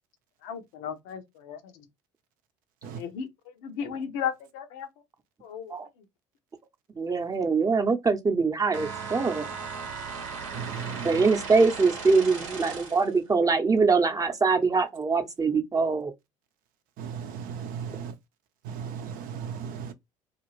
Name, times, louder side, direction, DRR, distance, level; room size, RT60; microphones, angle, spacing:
voice 1, 0.4-1.6 3.0-3.3 3.6-4.9 5.4-5.7, left 8 dB, 70° left, 0.6 m, -34 dB
voice 2, 7.0-9.5 11.0-16.1, right 4 dB, 20° right, 0.7 m, -23 dB
sound 1, 8.7-13.2, right 5 dB, 85° right, 0.8 m, -37 dB
voice 3, 10.5-11.2 17.0-18.1 18.6-19.9, right 7 dB, 60° right, 0.6 m, -36 dB
2.4 x 2.3 x 3.1 m
hypercardioid pair, 60°, 17 cm